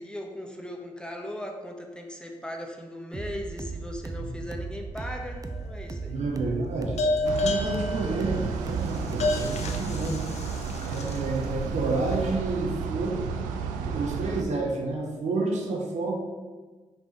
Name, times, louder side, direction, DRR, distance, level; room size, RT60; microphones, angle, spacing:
voice 1, 0.0-6.2, equal, 5° left, 1 dB, 1.3 m, -38 dB
sound 1, 3.1-10.5, right 3 dB, 25° right, 0.7 m, -37 dB
sound 2, 5.0-5.6 7.0-11.4, left 2 dB, 60° left, 0.9 m, -30 dB
voice 2, 6.1-10.2 10.8-13.2 13.8-16.1, right 3 dB, 65° right, 0 dB, 1.3 m, -30 dB
sound 3, 7.2-14.4, right 5 dB, 85° right, 0.4 m, -33 dB
5.4 x 5.2 x 4.4 m, 1.3 s
hypercardioid pair, 40°, 13 cm